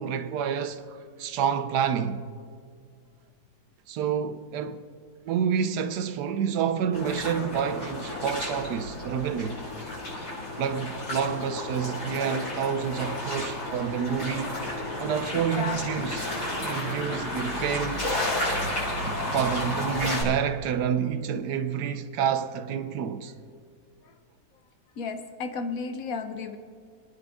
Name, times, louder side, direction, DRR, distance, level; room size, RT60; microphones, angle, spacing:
voice 1, 0.0-2.2 3.9-4.8 5.2-9.6 10.6-14.6 15.0-16.3 16.6-18.0 19.3-23.3, right 7 dB, 80° right, 1.3 m, -28 dB
sound 1, 6.9-20.2, left 1 dB, 80° left, 5.9 m, -32 dB
voice 2, 15.3-16.2 25.0-26.6, left 4 dB, 60° left, 1.3 m, -34 dB
29.5 x 10.0 x 3.6 m
omnidirectional pair, 1.8 m